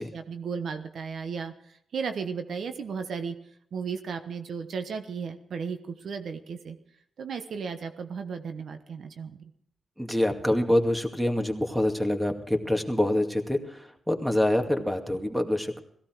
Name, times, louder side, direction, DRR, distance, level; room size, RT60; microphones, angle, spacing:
voice 1, 0.1-3.4 3.7-6.8 7.2-9.4, right 6 dB, 75° right, 7 dB, 1.1 m, -35 dB
voice 2, 10.0-15.8, left 1 dB, 5° right, 4 dB, 2.3 m, -26 dB
17.5 x 16.0 x 4.7 m, 0.70 s
cardioid pair, 55°, 0 cm